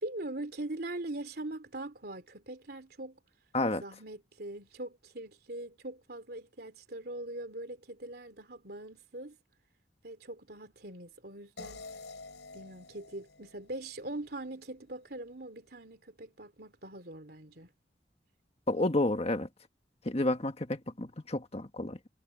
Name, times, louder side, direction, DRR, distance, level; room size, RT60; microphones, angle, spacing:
voice 1, 0.0-3.2 3.7-9.4 10.0-11.8 12.5-17.7, right 2 dB, 60° right, 3.2 m, -42 dB
sound 1, 11.6-14.6, left 3 dB, 90° left, 4.8 m, -49 dB
voice 2, 18.7-19.5 20.0-22.1, left 2 dB, 35° left, 1.6 m, -30 dB
head